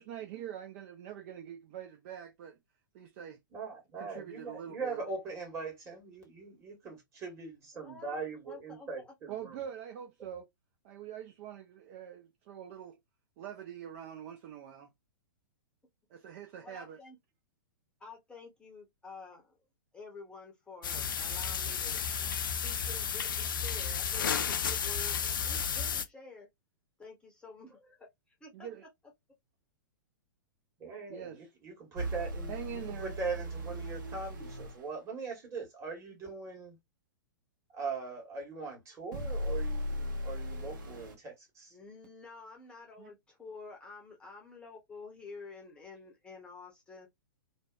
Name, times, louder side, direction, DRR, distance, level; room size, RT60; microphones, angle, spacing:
voice 1, 0.0-2.6 2.9-3.4 4.0-5.0 9.3-10.5 10.8-13.0 13.4-14.9 16.1-17.0 28.5-28.9 31.1-31.4 32.5-33.1 43.0-43.1, right 9 dB, 40° right, 0.4 m, -44 dB
voice 2, 3.5-9.6 10.2-10.3 30.8-36.8 37.7-41.7, right 4 dB, 25° right, 1.4 m, -41 dB
voice 3, 7.8-8.2 8.5-9.1 16.6-17.2 18.0-19.6 19.9-22.0 22.4-26.5 27.0-28.1 28.4-28.7 41.7-47.1, left 4 dB, 10° left, 0.7 m, -50 dB
sound 1, 20.8-26.0, left 7 dB, 70° left, 0.4 m, -32 dB
sound 2, 31.9-34.8 39.1-41.1, equal, 60° right, 0.8 m, -37 dB
2.6 x 2.1 x 2.3 m
figure-of-eight pair, 110°, 12 cm